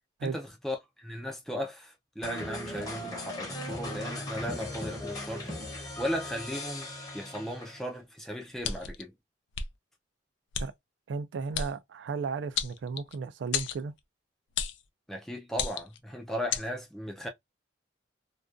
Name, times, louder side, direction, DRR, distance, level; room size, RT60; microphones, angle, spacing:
voice 1, 0.2-6.9 7.1-9.1 15.1-17.3, equal, ahead, 0.3 m, -36 dB
sound 1, 2.2-7.9, left 1 dB, 20° left, 0.8 m, -38 dB
sound 2, 8.6-9.0 9.5-9.7 10.5-10.7 11.5-11.7 12.6-13.2 13.5-13.8 14.6-14.8 15.5-16.0 16.5-16.7, left 7 dB, 90° left, 0.4 m, -32 dB
voice 2, 11.1-13.9, right 5 dB, 80° right, 0.3 m, -34 dB
2.3 x 2.2 x 2.4 m
head